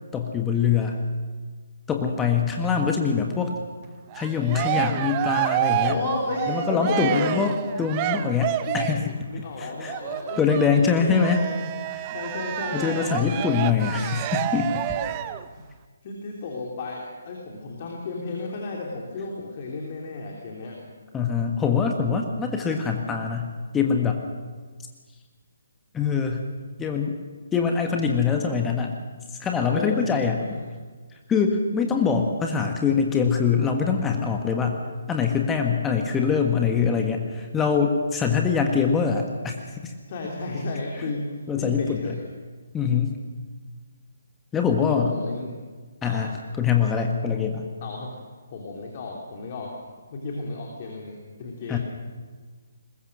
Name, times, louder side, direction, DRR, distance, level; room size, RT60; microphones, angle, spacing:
voice 1, 0.1-1.0 1.9-3.5 4.1-6.0 6.5-7.5 7.8-9.1 9.6-9.9 10.4-11.4 11.9-12.0 12.7-14.7 15.0-15.2 21.1-24.2 25.9-26.4 26.8-27.1 27.5-28.9 29.4-30.4 31.3-34.8 35.1-39.6 39.8-39.9 41.5-42.0 42.7-43.2 44.5-45.1 46.0-47.7 51.7-51.8, left 6 dB, 10° left, 3 dB, 1.6 m, -23 dB
Cheering, 4.1-9.1 9.9-15.4, right 12 dB, 25° right, 0.8 m, -29 dB
voice 2, 5.8-7.5 8.2-8.3 8.7-8.8 9.3-11.9 12.1-13.4 15.5-15.7 16.0-20.8 29.7-30.0 30.3-30.5 39.6-39.7 40.1-42.3 45.0-45.5 46.0-46.4 47.8-48.1 48.5-49.7 50.1-51.8, left 3 dB, 40° left, 0 dB, 3.0 m, -33 dB
21.0 x 21.0 x 6.5 m, 1.4 s
figure-of-eight pair, 140°, 0 cm